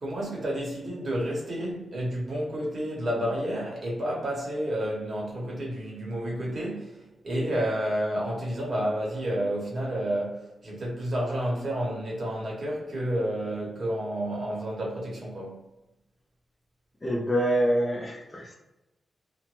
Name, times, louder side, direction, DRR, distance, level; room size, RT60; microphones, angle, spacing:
voice 1, 0.0-7.0 7.2-15.6, equal, 40° right, 1.0 m, -30 dB
voice 2, 17.0-18.5, right 1 dB, 20° left, 0.4 m, -26 dB
3.0 x 2.1 x 3.0 m
wide cardioid pair, 180°, 0 cm